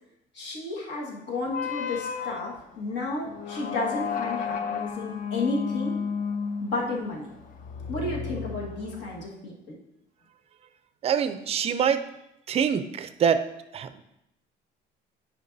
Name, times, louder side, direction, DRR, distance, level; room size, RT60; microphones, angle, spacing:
voice 1, 0.3-6.0 6.6-7.3 7.9-9.8, left 2 dB, 70° left, -2 dB, 1.6 m, -32 dB
sound 1, 1.5-9.3, left 6 dB, 45° left, 0.5 m, -33 dB
voice 2, 11.0-12.0 12.5-13.4 13.7-14.0, right 7 dB, 35° right, 10 dB, 0.4 m, -25 dB
9.6 x 4.6 x 2.6 m, 0.84 s
cardioid pair, 145°, 19 cm